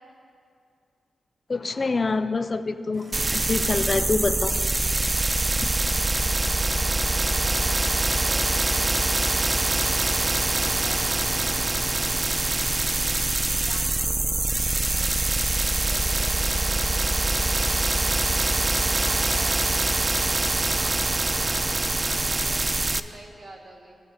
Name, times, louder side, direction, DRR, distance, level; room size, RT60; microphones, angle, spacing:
voice 1, 1.5-4.5 5.6-5.7, left 3 dB, 40° left, 10 dB, 0.4 m, -26 dB
sound 1, 2.9-19.3, equal, 55° right, 1.8 m, -48 dB
sound 2, 3.1-23.0, right 2 dB, 30° right, 0.3 m, -24 dB
voice 2, 7.0-9.0 9.4-11.6 12.9-15.2 15.8-17.7 18.7-20.4 20.7-24.0, right 1 dB, 75° right, -3 dB, 1.6 m, -46 dB
16.5 x 7.8 x 2.6 m, 2.4 s
cardioid pair, 65°, 0 cm